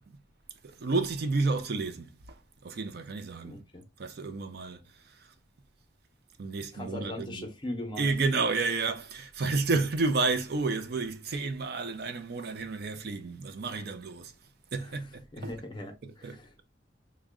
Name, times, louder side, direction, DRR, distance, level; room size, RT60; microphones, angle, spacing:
voice 1, 0.6-3.6 4.0-5.3 6.4-7.4 8.0-14.3 14.7-15.5 16.0-16.4, right 3 dB, 55° right, 0.5 m, -31 dB
voice 2, 3.4-3.8 6.7-8.0 14.8-15.1 15.3-16.7, left 1 dB, 25° left, 0.7 m, -40 dB
3.5 x 2.2 x 3.5 m
head